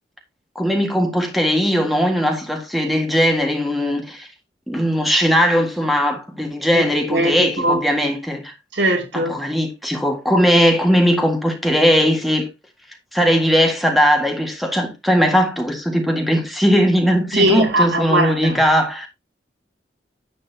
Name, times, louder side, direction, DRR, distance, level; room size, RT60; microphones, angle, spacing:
voice 1, 0.6-4.3 4.7-8.5 9.1-12.5 13.1-19.1, equal, ahead, 1.7 m, -18 dB
voice 2, 7.1-7.8 8.7-9.4 17.3-18.6, right 1 dB, 80° right, 2.6 m, -19 dB
10.0 x 8.2 x 2.8 m
head